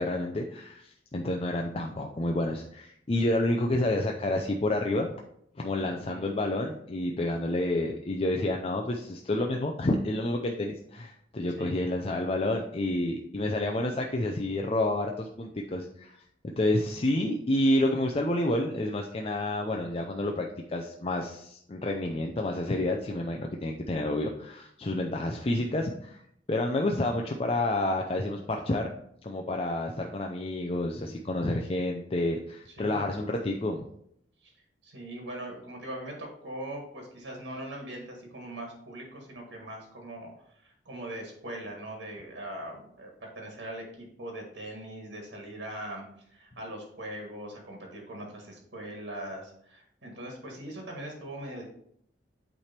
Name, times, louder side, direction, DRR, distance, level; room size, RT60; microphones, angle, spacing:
voice 1, 0.0-5.1 5.6-16.2 16.4-26.2 26.5-28.8 29.2-33.8, left 1 dB, 30° left, 2 dB, 0.5 m, -29 dB
voice 2, 5.8-6.2 11.6-11.8 32.7-33.0 34.4-34.5 34.8-51.6, right 1 dB, 80° right, 1 dB, 1.7 m, -41 dB
8.6 x 3.3 x 4.4 m, 0.69 s
head